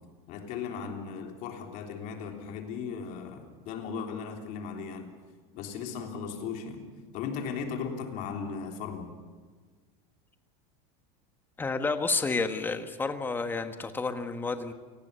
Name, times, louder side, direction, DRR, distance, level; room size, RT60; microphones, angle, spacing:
voice 1, 0.3-5.1 5.5-6.8 7.1-9.1, left 6 dB, 45° left, 4 dB, 3.6 m, -37 dB
voice 2, 11.6-14.7, left 4 dB, 10° left, 8 dB, 1.4 m, -30 dB
28.5 x 19.0 x 6.9 m, 1.5 s
supercardioid pair, 155°, 18 cm